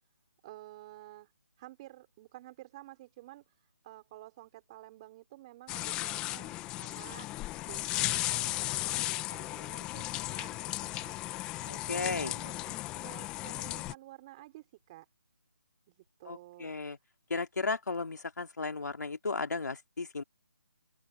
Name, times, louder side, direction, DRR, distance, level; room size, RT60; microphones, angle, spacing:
voice 1, 0.4-1.3 1.6-7.3 7.6-11.2 11.7-15.1 15.9-16.8, right 17 dB, 20° right, 5.0 m, -52 dB
sound 1, 5.7-13.9, left 17 dB, 10° left, 0.6 m, -35 dB
voice 2, 11.7-12.3 16.3-17.0 17.3-20.2, left 4 dB, 85° left, 3.1 m, -35 dB
open air
hypercardioid pair, 170°, 9 cm